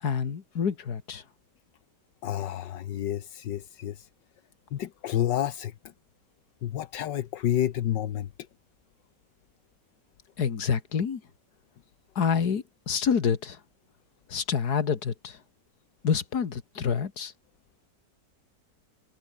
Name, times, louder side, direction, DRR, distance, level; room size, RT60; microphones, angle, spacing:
voice 1, 0.0-1.2 10.4-11.2 12.2-13.6 14.3-15.4 16.0-17.3, left 6 dB, 60° left, 2.3 m, -27 dB
voice 2, 2.2-4.1 4.7-5.7 6.6-8.3, left 11 dB, 80° left, 1.6 m, -29 dB
omnidirectional pair, 1.9 m